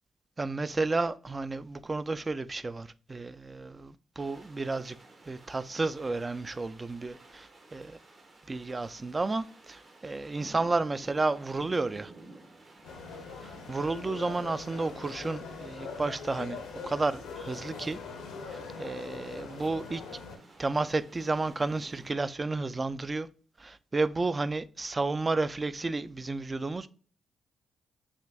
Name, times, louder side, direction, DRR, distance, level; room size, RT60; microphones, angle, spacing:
voice 1, 0.4-5.0 5.3-8.0 8.5-12.1 13.7-18.0 18.8-20.0 20.6-23.3 23.6-26.9, right 3 dB, 30° right, 0.3 m, -32 dB
sound 1, 4.2-22.1, right 2 dB, 55° right, 1.2 m, -54 dB
sound 2, 12.8-20.4, left 5 dB, 80° left, 0.7 m, -42 dB
6.2 x 2.6 x 2.3 m
hypercardioid pair, 40°, 0 cm